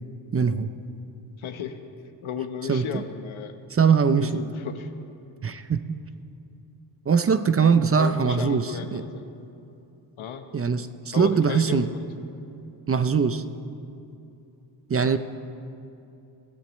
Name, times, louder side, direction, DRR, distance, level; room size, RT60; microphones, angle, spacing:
voice 1, 0.3-0.7 2.7-2.8 3.7-4.4 5.4-5.8 7.1-9.0 10.5-11.9 12.9-13.4 14.9-15.2, right 6 dB, 30° right, 10 dB, 0.5 m, -21 dB
voice 2, 1.4-1.8 2.2-3.6 4.2-4.9 8.0-9.3 10.2-10.5 11.1-12.0, left 7 dB, 85° left, 7 dB, 1.1 m, -34 dB
22.5 x 14.0 x 3.1 m, 2.8 s
wide cardioid pair, 105°, 47 cm